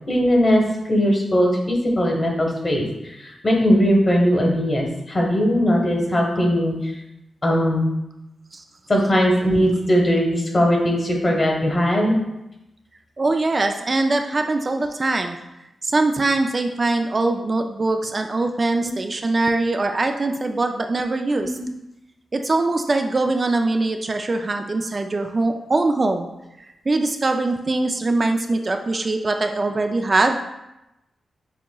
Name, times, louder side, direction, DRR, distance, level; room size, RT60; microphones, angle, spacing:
voice 1, 0.1-0.6 0.9-6.9 7.4-7.8 8.9-12.2 14.4-14.5 21.4-21.7, equal, 40° left, 0 dB, 1.1 m, -19 dB
voice 2, 13.2-15.4 15.8-21.5 22.3-26.3 26.9-30.4, right 2 dB, 40° right, 5 dB, 0.3 m, -22 dB
6.9 x 2.9 x 2.3 m, 0.91 s
cardioid pair, 75°, 0 cm